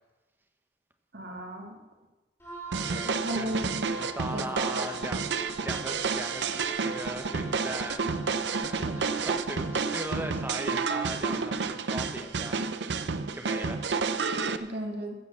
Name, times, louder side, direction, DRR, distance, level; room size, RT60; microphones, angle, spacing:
voice 1, 1.1-1.8 3.1-3.8 4.3-4.9 14.6-15.1, right 1 dB, 70° right, 1 dB, 2.4 m, -35 dB
Wind instrument woodwind instrument, 2.4-10.6, right 2 dB, 15° left, 3.2 m, -43 dB
sound 1, 2.7-14.6, right 4 dB, 85° right, 0.7 m, -30 dB
voice 2, 2.9-3.6 3.9-13.9, right 1 dB, 10° right, 5 dB, 1.3 m, -39 dB
15.5 x 7.4 x 7.3 m, 1.2 s
head